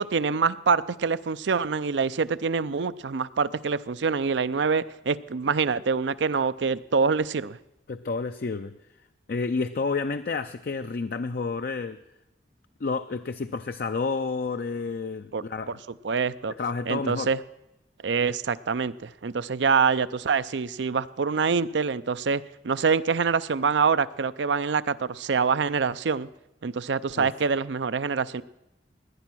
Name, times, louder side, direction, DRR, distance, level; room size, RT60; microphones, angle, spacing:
voice 1, 0.0-7.6 15.3-15.4 16.0-16.5 16.9-17.4 18.0-26.3 26.6-28.4, right 5 dB, 75° right, 15 dB, 0.5 m, -25 dB
voice 2, 7.9-8.7 9.3-12.0 12.8-15.8 16.6-17.3 27.2-27.3, left 4 dB, 55° left, 9 dB, 0.5 m, -30 dB
17.5 x 10.5 x 6.1 m, 0.92 s
head